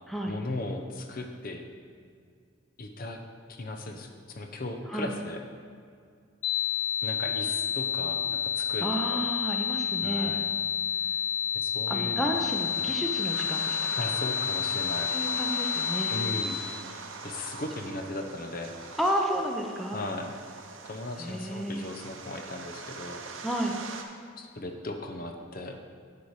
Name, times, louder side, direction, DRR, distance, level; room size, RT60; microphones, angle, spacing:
voice 1, 0.3-1.7 2.8-3.2 3.5-5.4 7.0-9.2 10.0-10.4 10.9-11.3 11.5-12.5 12.7-12.9 14.0-15.1 16.1-16.7 17.2-18.7 19.9-20.4 20.8-23.2 24.4-25.8, left 2 dB, 45° left, 5 dB, 0.7 m, -37 dB
sound 1, 6.4-16.4, left 9 dB, 75° left, 1.0 m, -29 dB
voice 2, 8.8-10.3 11.9-13.8 15.1-16.1 19.0-20.0 21.2-21.8 23.4-23.8, equal, ahead, 1 dB, 0.6 m, -31 dB
sound 2, 12.3-24.0, right 4 dB, 75° right, 0.8 m, -42 dB
8.1 x 6.9 x 4.8 m, 2.2 s
head